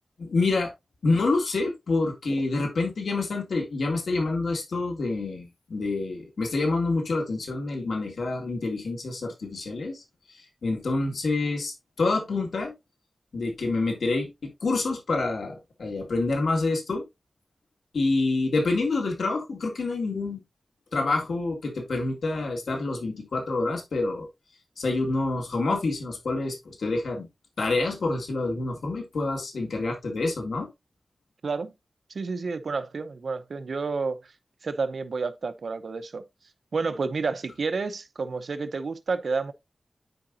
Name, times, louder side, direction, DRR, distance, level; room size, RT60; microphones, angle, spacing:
voice 1, 0.2-0.7 1.0-10.0 10.3-12.7 13.3-17.0 17.9-20.4 20.9-24.3 24.8-27.3 27.6-30.7, left 3 dB, 85° left, 2.2 m, -27 dB
voice 2, 32.1-34.2 34.6-36.2 36.7-39.5, right 4 dB, 75° right, 0.8 m, -30 dB
10.5 x 5.0 x 2.7 m
wide cardioid pair, 80°, 0 cm